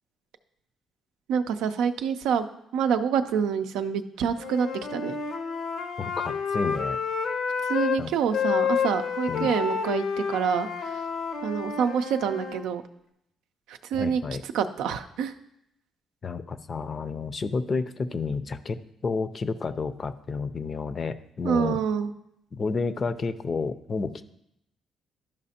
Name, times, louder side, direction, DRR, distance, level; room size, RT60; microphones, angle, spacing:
voice 1, 1.3-2.5 2.7-5.2 7.7-10.7 11.4-12.8 13.7-14.2 14.5-15.3 21.4-22.1, right 7 dB, 90° right, 8 dB, 0.4 m, -26 dB
Wind instrument woodwind instrument, 4.4-8.0 8.3-12.6, left 6 dB, 80° left, 0.8 m, -29 dB
voice 2, 6.0-7.0 8.0-8.1 9.3-9.5 13.9-14.4 16.2-21.8 22.5-24.3, left 4 dB, 40° left, 12 dB, 0.5 m, -30 dB
12.0 x 5.0 x 2.8 m, 0.79 s
cardioid pair, 90°, 0 cm